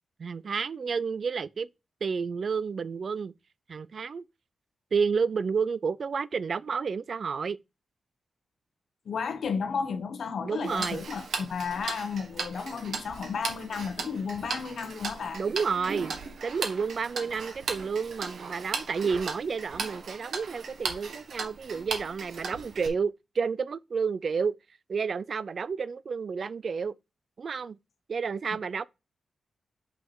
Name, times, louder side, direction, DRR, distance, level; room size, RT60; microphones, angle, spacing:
voice 1, 0.2-1.7 2.0-3.3 3.7-4.2 4.9-7.6 10.4-11.0 15.3-16.2 16.4-24.5 24.9-26.9 27.4-27.8 28.1-28.8, right 5 dB, 50° right, 0.3 m, -30 dB
voice 2, 9.0-15.4, left 6 dB, 65° left, 0.9 m, -33 dB
Tick-tock, 10.6-22.9, right 5 dB, 70° right, 1.4 m, -37 dB
5.7 x 5.3 x 4.6 m
wide cardioid pair, 150°, 0 cm